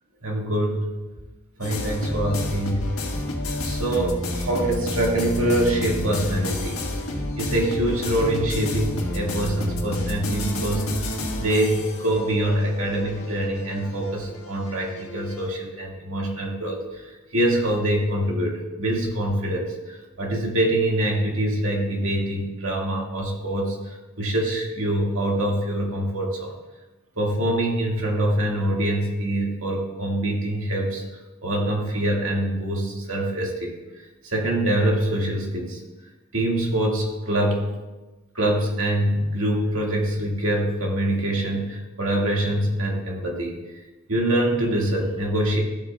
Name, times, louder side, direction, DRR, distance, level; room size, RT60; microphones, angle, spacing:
voice 1, 0.2-0.9 1.6-2.9 3.6-6.8 7.4-11.1 11.4-17.0 17.3-23.8 24.2-26.5 27.2-31.0 31.4-33.8 34.2-35.8 36.3-37.7 38.4-43.6 44.1-45.6, right 1 dB, 65° right, -1 dB, 2.1 m, -24 dB
sound 1, 1.6-15.5, left 1 dB, 65° left, 1.7 m, -30 dB
14.0 x 7.9 x 2.4 m, 1.1 s
head